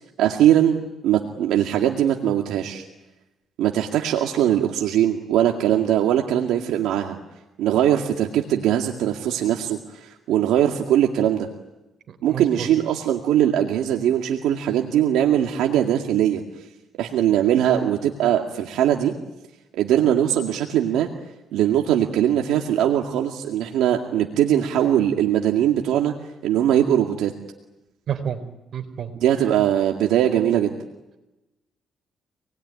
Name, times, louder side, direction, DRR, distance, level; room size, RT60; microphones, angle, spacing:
voice 1, 0.2-2.8 3.6-7.2 7.6-11.5 12.2-16.4 17.0-19.1 19.7-21.1 21.5-26.1 26.4-27.3 29.2-30.8, right 11 dB, 90° right, 2 dB, 2.1 m, -21 dB
voice 2, 12.1-12.7 28.1-28.4 28.7-29.1, right 8 dB, 60° right, 6 dB, 4.5 m, -29 dB
27.5 x 20.5 x 9.7 m, 0.99 s
cardioid pair, 90°, 0 cm